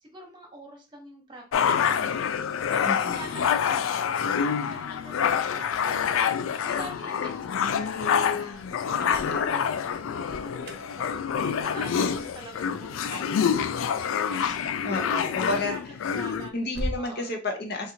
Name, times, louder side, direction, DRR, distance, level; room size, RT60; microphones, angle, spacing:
voice 1, 0.0-2.4 2.7-6.0 6.6-9.9 10.3-14.0 14.3-14.7 15.2-15.8 16.1-16.6 17.0-17.3, right 1 dB, 25° right, 1 dB, 1.0 m, -45 dB
sound 1, 1.5-16.5, left 7 dB, 85° left, 0.3 m, -27 dB
voice 2, 2.8-3.3 9.0-9.8 14.8-15.7 16.5-17.9, left 2 dB, 50° left, 3 dB, 0.8 m, -31 dB
Alarm, 10.2-17.1, right 1 dB, 50° right, 0.6 m, -42 dB
4.1 x 2.5 x 2.8 m, 0.33 s
head